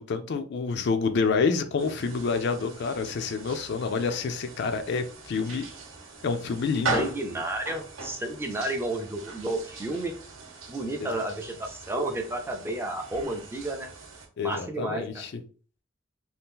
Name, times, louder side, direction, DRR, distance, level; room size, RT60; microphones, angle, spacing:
voice 1, 0.0-5.6 6.2-7.0 11.0-11.2 14.4-15.4, left 4 dB, 55° left, 0.4 m, -28 dB
sound 1, 1.8-14.3, right 3 dB, 75° right, 0.8 m, -39 dB
voice 2, 6.9-10.1 10.7-13.9 14.4-15.2, right 1 dB, 10° right, 0.4 m, -31 dB
2.7 x 2.4 x 3.6 m
head